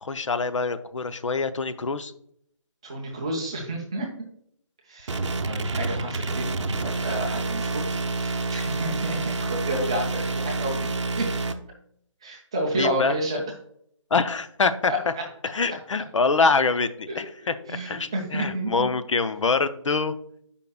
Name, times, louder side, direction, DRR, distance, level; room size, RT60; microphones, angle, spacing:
voice 1, 0.0-2.1 12.7-13.2 14.1-14.9 15.5-20.1, left 4 dB, 70° left, 11 dB, 0.5 m, -25 dB
voice 2, 2.8-4.1 4.9-6.5 6.8-7.8 8.1-10.8 11.2-11.3 12.2-13.4 14.9-15.0 17.1-18.9, right 1 dB, 10° right, -1 dB, 0.4 m, -30 dB
sound 1, 5.1-11.5, right 3 dB, 65° right, 0.6 m, -28 dB
8.2 x 5.3 x 2.3 m, 0.68 s
figure-of-eight pair, 165°, 16 cm